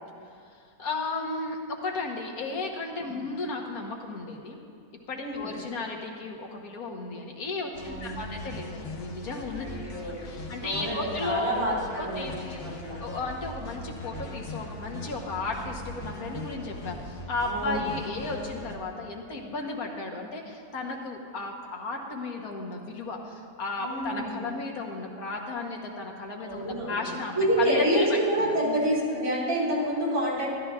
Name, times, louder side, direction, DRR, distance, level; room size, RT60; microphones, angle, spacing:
voice 1, 0.4-4.6 5.1-9.7 10.2-11.5 12.0-28.6, left 3 dB, 75° left, 0 dB, 1.6 m, -34 dB
voice 2, 5.2-5.5 7.8-8.2 9.6-10.2 10.6-13.0 17.5-17.8 23.8-24.4 26.4-27.0 27.3-30.5, right 1 dB, 80° right, -7 dB, 3.8 m, -28 dB
sound 1, 7.7-18.8, left 1 dB, 50° left, 1.0 m, -40 dB
13.5 x 13.0 x 2.4 m, 2.2 s
omnidirectional pair, 1.5 m